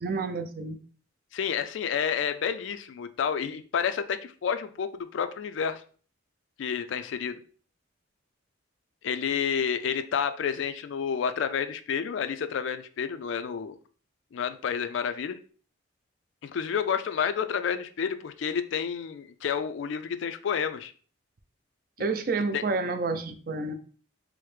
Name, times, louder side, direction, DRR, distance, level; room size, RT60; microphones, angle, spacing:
voice 1, 0.0-0.8 22.0-23.7, right 3 dB, 50° right, 8 dB, 0.4 m, -29 dB
voice 2, 1.3-5.8 6.6-7.4 9.0-13.8 14.3-15.4 16.4-20.9 22.5-22.6, left 7 dB, 80° left, 10 dB, 0.3 m, -30 dB
4.6 x 2.1 x 3.2 m, 0.42 s
head